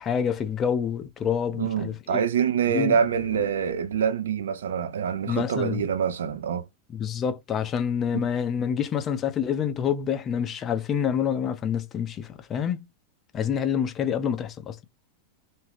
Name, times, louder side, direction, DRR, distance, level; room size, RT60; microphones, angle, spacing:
voice 1, 0.0-2.2 2.7-3.0 5.2-5.8 6.9-12.9 13.3-14.8, left 8 dB, 25° left, 0.5 m, -27 dB
voice 2, 1.6-6.7 8.1-8.2, right 7 dB, 60° right, 0.4 m, -25 dB
sound 1, 2.9-4.5, left 3 dB, 80° left, 0.4 m, -40 dB
2.5 x 2.3 x 3.1 m
figure-of-eight pair, 90°, 0 cm